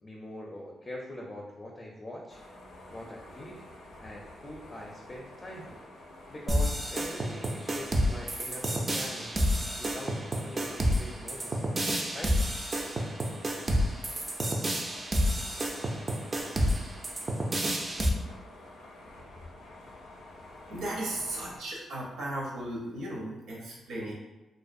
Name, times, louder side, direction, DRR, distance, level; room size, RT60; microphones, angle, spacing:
voice 1, 0.0-2.4 2.9-3.6 4.0-5.8 6.3-9.3 9.8-11.8 12.1-12.5, left 1 dB, 30° left, -1 dB, 0.4 m, -43 dB
sound 1, 2.3-21.6, left 1 dB, 90° left, 0.5 m, -49 dB
sound 2, 6.5-18.1, equal, 35° right, 0.4 m, -29 dB
voice 2, 20.7-24.1, right 1 dB, 85° right, -3 dB, 0.6 m, -36 dB
2.4 x 2.1 x 2.5 m, 1.1 s
cardioid pair, 60°, 0 cm